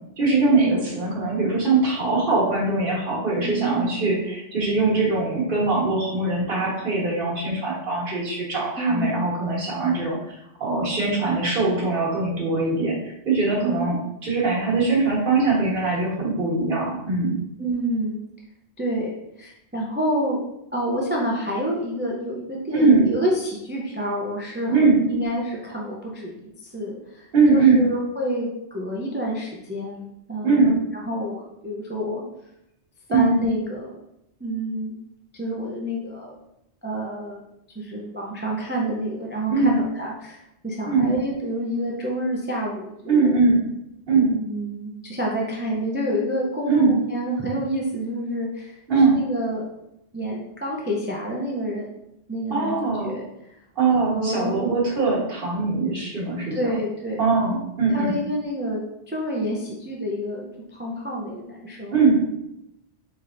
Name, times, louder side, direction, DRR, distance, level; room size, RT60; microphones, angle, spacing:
voice 1, 0.2-10.3 10.6-17.3 22.7-23.1 24.7-25.0 27.3-27.8 30.4-30.8 33.1-33.3 39.5-39.8 40.9-41.1 43.1-43.6 44.1-44.3 46.7-47.0 48.9-49.2 52.5-53.1 53.8-56.7 57.2-58.1 61.9-62.2, right 3 dB, 55° right, -5 dB, 1.3 m, -21 dB
voice 2, 3.4-3.9 8.8-9.1 13.6-13.8 17.6-18.2 18.8-19.1 19.4-20.4 20.7-24.7 25.1-26.4 26.6-32.2 33.1-34.0 34.4-35.0 35.3-36.4 36.8-37.4 37.7-43.4 44.2-48.8 49.1-49.6 50.1-51.9 52.3-53.3 54.1-54.7 56.5-57.3 57.9-58.8 59.1-61.9, equal, 20° right, -3 dB, 0.3 m, -28 dB
4.2 x 3.3 x 2.5 m, 0.83 s
omnidirectional pair, 1.2 m